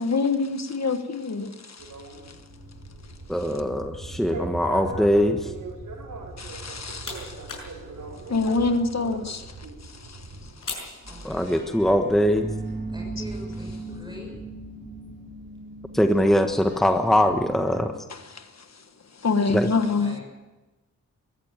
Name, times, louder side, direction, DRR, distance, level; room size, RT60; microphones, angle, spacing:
voice 1, 0.0-1.9 2.3-2.4 6.4-7.6 8.3-10.6 11.1-11.3 18.1-18.8 19.1-20.1, left 4 dB, 55° left, 1.4 m, -27 dB
sound 1, 1.8-10.5, right 3 dB, 85° right, 4.8 m, -39 dB
voice 2, 3.3-5.5 11.2-12.5 15.9-17.9 19.5-19.7, equal, ahead, 1.4 m, -22 dB
sound 2, 6.5-11.8, left 4 dB, 85° left, 6.4 m, -43 dB
sound 3, 11.0-17.9, right 2 dB, 35° right, 5.1 m, -38 dB
voice 3, 11.1-11.6 12.9-14.4 20.0-20.2, right 1 dB, 15° right, 6.5 m, -42 dB
22.0 x 14.0 x 8.9 m
wide cardioid pair, 95°, 32 cm